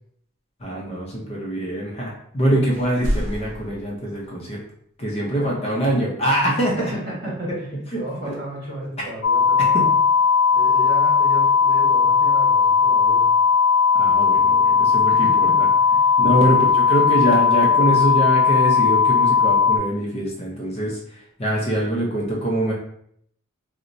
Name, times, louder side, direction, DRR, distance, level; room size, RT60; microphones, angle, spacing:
voice 1, 0.6-4.6 5.0-6.9 7.5-7.6 7.9-8.4 9.6-9.9 13.9-15.3 15.6-15.7 16.2-22.7, right 1 dB, 30° left, -2 dB, 0.6 m, -24 dB
sound 1, 2.7-4.3 6.9-7.0, equal, 75° right, 0.6 m, -28 dB
voice 2, 5.3-5.8 6.7-10.0 10.5-13.3 15.1-16.6, right 1 dB, 45° right, -5 dB, 1.3 m, -34 dB
sound 2, 9.2-19.8, left 5 dB, 85° left, 0.4 m, -17 dB
4.0 x 2.1 x 2.6 m, 0.68 s
head